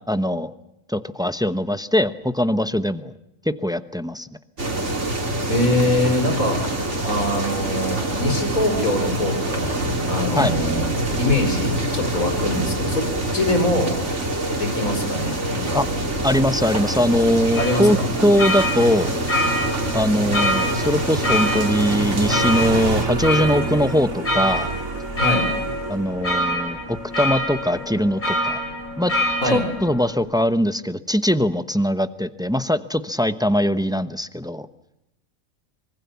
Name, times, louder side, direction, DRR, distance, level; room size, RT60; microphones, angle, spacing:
voice 1, 0.1-0.5 0.9-3.1 3.4-4.3 10.4-10.5 15.7-15.9 16.2-18.0 18.2-19.2 19.9-24.7 25.9-28.6 29.0-29.1 29.5-34.7, equal, 5° right, 12 dB, 0.8 m, -21 dB
sound 1, 4.6-23.0, right 1 dB, 60° right, 3.3 m, -25 dB
voice 2, 5.5-6.6 7.0-9.7 10.1-10.8 11.2-13.0 13.3-13.9 14.6-15.8 17.6-18.1 25.1-25.5 29.4-29.6, left 1 dB, 90° left, 5 dB, 5.8 m, -23 dB
Motorcycle, 15.7-30.1, right 4 dB, 80° right, 3.7 m, -33 dB
sound 2, 17.5-30.1, left 1 dB, 35° left, 7.2 m, -26 dB
25.5 x 23.5 x 7.1 m, 0.84 s
omnidirectional pair, 1.4 m